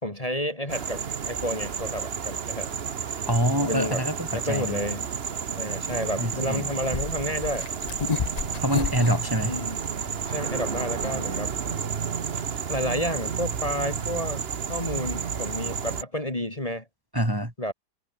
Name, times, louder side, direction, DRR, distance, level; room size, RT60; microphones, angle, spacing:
voice 1, 0.0-2.7 3.6-4.0 4.3-5.1 5.5-7.7 9.4-9.8 10.3-11.5 12.7-16.9 17.6-17.7, equal, 20° left, 3.4 m, -31 dB
sound 1, 0.7-16.0, right 7 dB, 40° right, 1.1 m, -31 dB
voice 2, 3.3-4.8 6.2-6.6 8.6-9.6 17.1-17.5, equal, 10° right, 3.8 m, -25 dB
sound 2, 6.8-12.0, left 6 dB, 45° left, 0.5 m, -32 dB
omnidirectional pair, 1.8 m